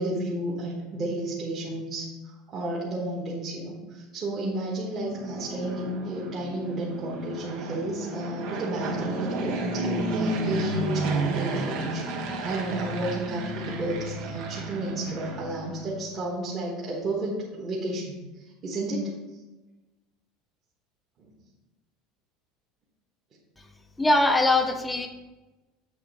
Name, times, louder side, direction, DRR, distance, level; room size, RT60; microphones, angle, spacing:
voice 1, 0.0-18.2 18.6-19.1 21.2-21.3, right 1 dB, 25° right, -6 dB, 1.3 m, -32 dB
Fixed-wing aircraft airplane, 4.9-16.0, right 2 dB, 65° right, 1.2 m, -32 dB
voice 2, 24.0-25.1, left 2 dB, 5° left, 6 dB, 0.6 m, -21 dB
8.0 x 3.8 x 5.3 m, 1.1 s
cardioid pair, 165°, 0 cm